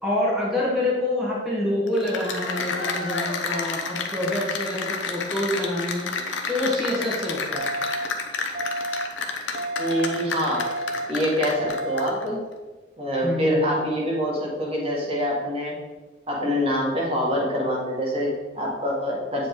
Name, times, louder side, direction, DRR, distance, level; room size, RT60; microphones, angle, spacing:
voice 1, 0.0-6.1 6.5-7.6 13.2-13.8, left 1 dB, ahead, -7 dB, 1.4 m, -26 dB
Cheering / Applause, 1.9-12.2, left 4 dB, 80° left, 0.8 m, -30 dB
sound 1, 7.5-8.0 8.5-9.0 9.5-10.0 10.5-11.0 11.5-12.0, right 1 dB, 45° right, 0.6 m, -30 dB
voice 2, 9.8-10.6 11.1-12.4 13.0-15.8 16.3-19.5, equal, 30° right, -4 dB, 1.7 m, -25 dB
8.3 x 4.9 x 3.7 m, 1.3 s
head